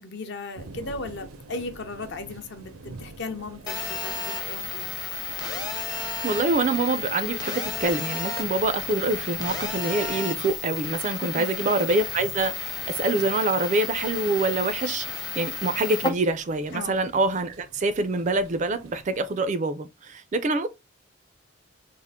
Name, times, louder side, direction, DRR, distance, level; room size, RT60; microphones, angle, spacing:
voice 1, 0.0-4.9 11.2-11.5 16.7-17.0, left 3 dB, 55° left, 0.7 m, -36 dB
sound 1, 0.6-19.5, right 3 dB, 90° right, 0.6 m, -47 dB
Telephone, 3.7-16.1, left 4 dB, 20° left, 0.6 m, -32 dB
voice 2, 6.0-20.7, right 2 dB, 35° right, 0.4 m, -26 dB
3.6 x 2.4 x 3.5 m
head